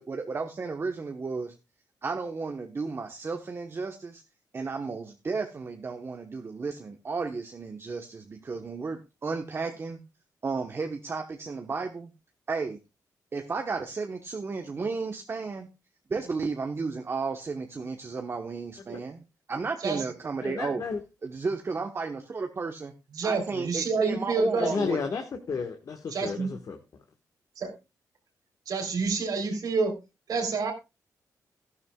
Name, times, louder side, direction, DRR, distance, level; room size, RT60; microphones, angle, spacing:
voice 1, 0.0-1.5 2.0-4.2 4.5-10.0 10.4-12.1 12.5-12.8 13.3-15.7 16.1-19.2 19.5-20.8 21.2-22.9 23.2-25.0, right 4 dB, 35° right, 5 dB, 1.1 m, -33 dB
voice 2, 20.4-21.0 24.6-26.8, left 5 dB, 55° left, 5 dB, 1.5 m, -32 dB
voice 3, 23.1-24.9 26.1-26.5 27.6-27.7 28.7-29.9 30.3-30.7, right 4 dB, 75° right, 2 dB, 3.5 m, -28 dB
14.0 x 12.0 x 2.3 m, 0.26 s
wide cardioid pair, 115°, 7 cm